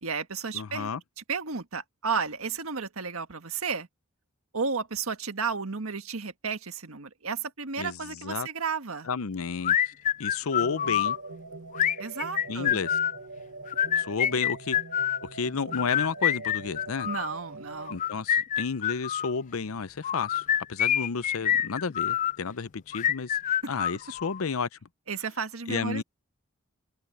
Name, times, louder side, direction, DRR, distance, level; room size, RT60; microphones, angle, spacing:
voice 1, 0.0-0.9 1.2-3.9 4.5-9.1 12.0-12.8 17.0-18.0 23.5-23.7 25.1-26.0, right 5 dB, 90° right, 1.6 m, -33 dB
voice 2, 0.5-1.0 7.8-8.5 9.1-9.9 10.2-11.2 12.5-12.9 14.0-14.8 15.3-17.1 17.9-20.4 20.7-23.4 23.7-24.7 25.7-26.0, left 5 dB, 90° left, 0.7 m, -31 dB
sound 1, 9.6-11.2 11.7-13.2 13.7-15.2 15.7-17.3 17.9-19.3 20.0-22.4 22.9-24.4, left 9 dB, 35° left, 0.3 m, -26 dB
sound 2, 10.6-18.0, right 3 dB, 75° right, 1.1 m, -43 dB
head